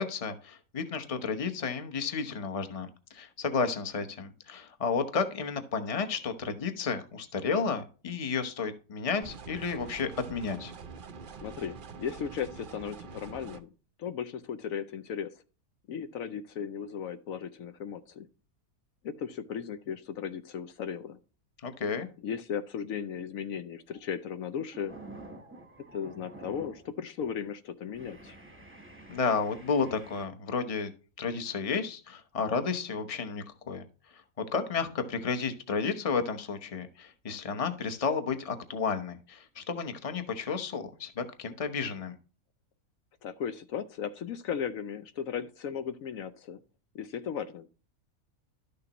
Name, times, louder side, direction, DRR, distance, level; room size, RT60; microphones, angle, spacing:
voice 1, 0.0-10.7 21.6-22.1 29.1-30.9 31.2-33.8 34.5-42.1, left 5 dB, 30° left, 7 dB, 0.9 m, -32 dB
sound 1, 9.2-13.6, right 5 dB, 50° right, 0.6 m, -45 dB
voice 2, 11.4-13.7 14.0-15.4 15.9-18.3 19.0-21.2 22.2-24.9 25.9-28.4 43.2-46.6 46.9-47.7, left 7 dB, 75° left, 10 dB, 1.0 m, -36 dB
sound 2, 23.8-24.1 24.5-26.9 27.2-27.5 27.9-30.3, right 2 dB, 10° right, 0.9 m, -49 dB
12.0 x 6.7 x 2.9 m, 0.36 s
omnidirectional pair, 1.5 m